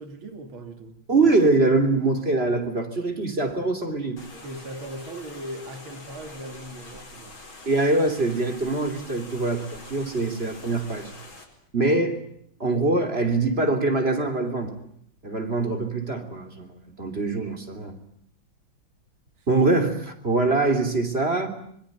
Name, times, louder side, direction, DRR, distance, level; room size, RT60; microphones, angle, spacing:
voice 1, 0.0-1.0 4.3-7.4 19.4-19.5, right 1 dB, 90° right, 3.1 m, -39 dB
voice 2, 1.1-4.2 7.6-11.1 11.7-12.2 12.6-14.7 15.2-16.7 17.0-17.9 19.5-21.5, right 3 dB, 30° right, 3.3 m, -23 dB
sound 1, 4.2-11.5, left 3 dB, 80° left, 5.5 m, -45 dB
25.5 x 23.0 x 9.4 m
omnidirectional pair, 2.2 m